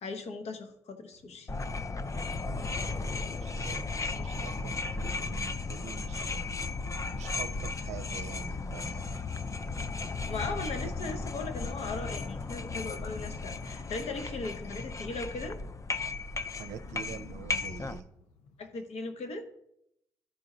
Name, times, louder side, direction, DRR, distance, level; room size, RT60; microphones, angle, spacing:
voice 1, 0.0-1.5 10.2-15.6 18.6-19.4, left 3 dB, 60° left, 7 dB, 1.1 m, -38 dB
sound 1, 1.1-18.8, left 4 dB, 75° left, 0.9 m, -56 dB
sound 2, 1.5-18.0, left 3 dB, 25° left, 0.5 m, -35 dB
voice 2, 2.5-6.5 7.1-9.2 16.6-18.1, right 8 dB, 70° right, 9 dB, 0.6 m, -45 dB
12.0 x 4.8 x 3.9 m, 0.80 s
hypercardioid pair, 40°, 12 cm